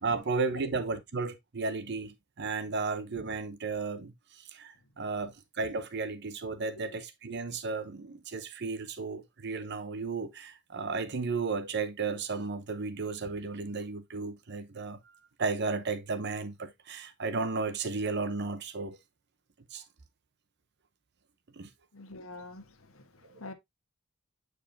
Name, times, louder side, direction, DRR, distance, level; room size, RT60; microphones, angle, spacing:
voice 1, 0.0-15.0 15.4-19.0 19.7-19.8 21.5-21.7 23.2-23.3, right 4 dB, 50° right, 0.8 m, -34 dB
voice 2, 21.9-23.5, left 2 dB, 70° left, 1.4 m, -46 dB
8.8 x 4.9 x 2.7 m
head